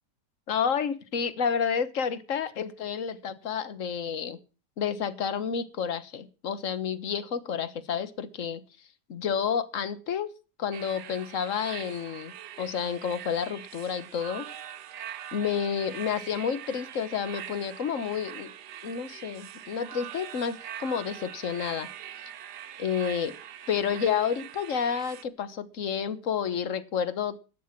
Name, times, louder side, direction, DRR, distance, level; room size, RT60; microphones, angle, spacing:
voice 1, 0.5-4.4 4.8-8.6 9.1-10.3 10.6-14.5 15.3-18.5 18.8-21.9 22.8-23.3 23.7-27.4, left 7 dB, 50° left, 14 dB, 1.5 m, -30 dB
sound 1, 10.7-25.2, right 10 dB, 75° right, 1.4 m, -43 dB
13.5 x 10.5 x 6.0 m, 0.34 s
omnidirectional pair, 1.8 m